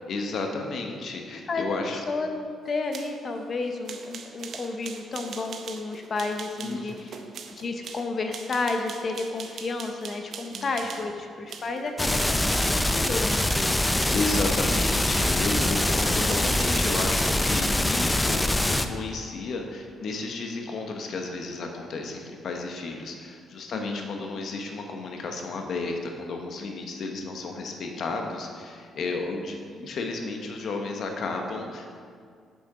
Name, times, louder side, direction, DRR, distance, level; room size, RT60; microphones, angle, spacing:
voice 1, 0.1-2.0 6.6-7.2 10.5-10.8 14.1-31.9, left 3 dB, 60° left, 3 dB, 1.0 m, -32 dB
voice 2, 2.1-7.1 7.6-14.0 23.7-24.3, left 3 dB, 40° left, 5 dB, 0.7 m, -32 dB
sound 1, 2.7-11.1 11.5-17.5, right 6 dB, 60° right, 0.6 m, -42 dB
sound 2, 12.0-18.9, left 1 dB, 10° left, 0.4 m, -24 dB
6.9 x 6.4 x 4.9 m, 2.1 s
cardioid pair, 120°, 0 cm